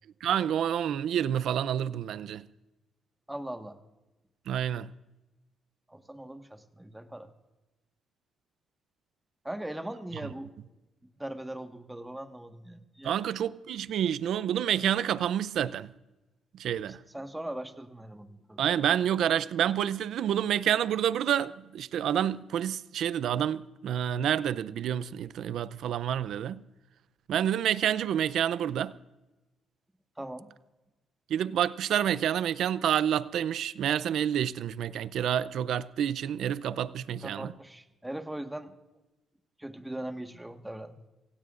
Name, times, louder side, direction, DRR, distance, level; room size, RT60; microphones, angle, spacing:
voice 1, 0.2-2.4 4.5-4.9 13.0-15.9 16.6-17.0 18.6-26.6 27.3-28.9 31.3-37.5, right 10 dB, 75° right, 0.5 m, -28 dB
voice 2, 3.3-3.8 5.9-7.3 9.4-10.5 11.2-13.2 17.1-18.6 30.2-30.5 37.2-38.7 39.6-41.0, right 1 dB, 10° right, 1.5 m, -40 dB
27.0 x 16.5 x 2.5 m
cardioid pair, 90°, 0 cm